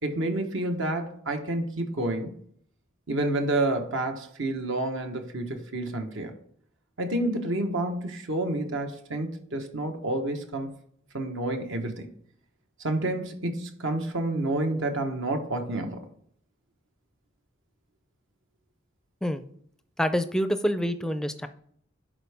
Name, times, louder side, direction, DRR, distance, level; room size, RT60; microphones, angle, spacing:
voice 1, 0.0-2.3 3.1-6.3 7.0-10.7 11.1-12.1 12.8-16.0, right 2 dB, 70° right, 4 dB, 1.2 m, -29 dB
voice 2, 20.0-21.5, equal, 5° left, 9 dB, 0.5 m, -26 dB
11.5 x 4.5 x 3.5 m, 0.64 s
head